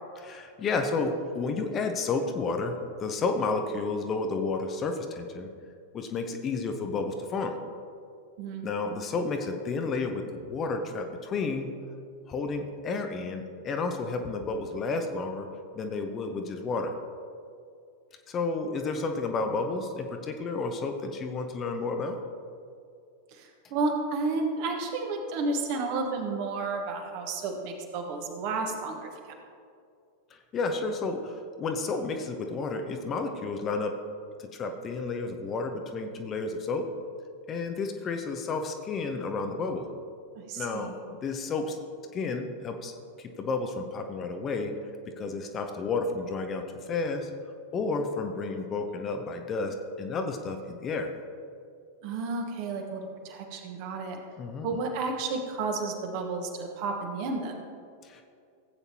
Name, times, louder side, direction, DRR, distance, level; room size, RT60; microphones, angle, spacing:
voice 1, 0.2-5.5 5.9-7.6 8.6-11.7 12.3-15.5 15.7-17.0 18.3-22.2 30.5-34.0 34.4-36.9 37.5-39.9 40.6-41.8 42.1-42.9 43.2-44.7 45.2-46.6 46.9-47.3 47.7-51.1 54.4-54.7 58.0-58.2, left 3 dB, 25° left, 5 dB, 0.8 m, -31 dB
voice 2, 23.3-29.1 40.3-40.9 52.0-54.2 54.6-57.6, right 3 dB, 45° right, 3 dB, 1.4 m, -32 dB
16.0 x 8.3 x 2.9 m, 2.4 s
figure-of-eight pair, 90°, 0 cm